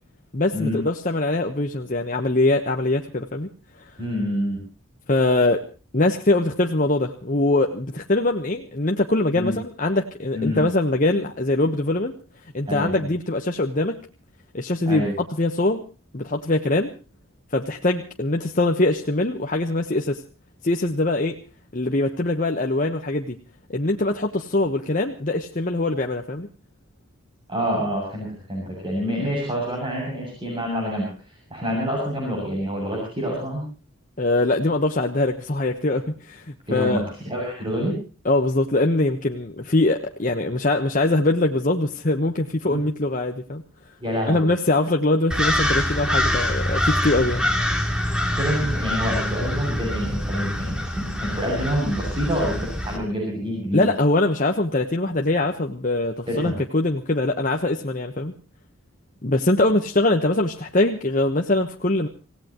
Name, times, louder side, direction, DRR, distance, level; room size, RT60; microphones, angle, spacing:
voice 1, 0.3-3.5 5.1-5.6 5.9-12.1 12.5-14.0 14.5-15.8 16.1-16.9 17.5-20.2 20.6-21.4 21.7-23.4 23.7-26.5 34.2-37.0 38.2-43.6 44.3-47.5 53.7-58.3 59.2-62.1, left 2 dB, 40° left, 3 dB, 1.1 m, -22 dB
voice 2, 4.0-4.6 9.3-9.5 10.3-10.6 12.7-13.1 14.9-15.1 27.5-33.6 36.7-38.0 42.7-42.8 44.0-44.5 48.4-53.8 56.3-56.6, equal, 25° right, -1 dB, 7.4 m, -27 dB
sound 1, 45.3-53.0, left 1 dB, 5° right, 2.9 m, -25 dB
26.5 x 17.0 x 3.0 m, 0.36 s
head